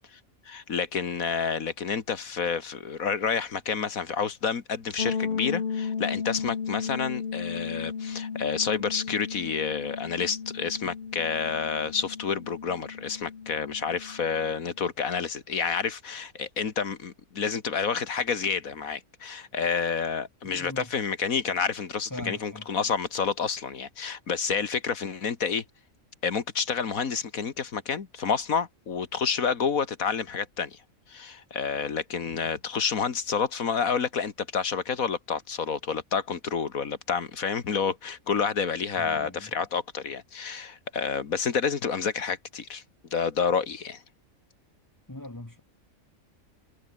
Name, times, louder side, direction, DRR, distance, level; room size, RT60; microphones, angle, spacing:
voice 1, 0.5-25.6 26.2-30.8 31.1-42.8 43.1-44.0, left 6 dB, 90° left, 2.2 m, -29 dB
sound 1, 5.0-14.7, left 6 dB, 45° left, 1.3 m, -34 dB
voice 2, 20.4-20.9 22.1-22.7 39.0-39.5 45.1-45.6, left 1 dB, 15° left, 1.9 m, -40 dB
omnidirectional pair, 1.4 m